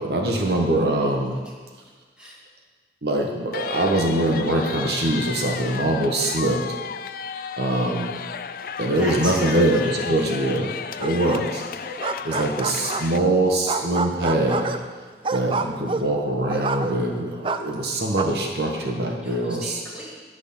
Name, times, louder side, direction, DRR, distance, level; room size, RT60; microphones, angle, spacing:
voice 1, 0.0-1.3 3.0-6.6 7.6-8.2 8.8-10.7 11.0-11.7 12.2-14.7 15.3-19.8, right 1 dB, 65° right, 1 dB, 1.2 m, -23 dB
sound 1, 3.5-13.2, left 7 dB, 50° left, 0.3 m, -34 dB
voice 2, 8.9-10.6 11.0-11.4 11.7-12.2 15.2-15.3 19.2-20.2, equal, 5° right, -5 dB, 2.1 m, -38 dB
sound 2, 11.0-11.6 11.9-13.3 13.7-17.2 17.4-18.2, right 4 dB, 30° right, 0.4 m, -28 dB
11.0 x 6.2 x 7.1 m, 1.5 s
head